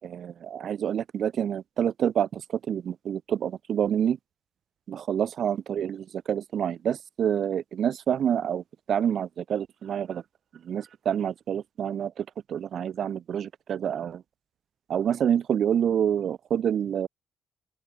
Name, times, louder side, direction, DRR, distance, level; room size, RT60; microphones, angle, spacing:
voice 1, 0.0-2.4 2.7-4.2 4.9-10.2 10.6-14.2 14.9-17.1, right 9 dB, 60° right, 5.7 m, -27 dB
open air
cardioid pair, 90°, 0 cm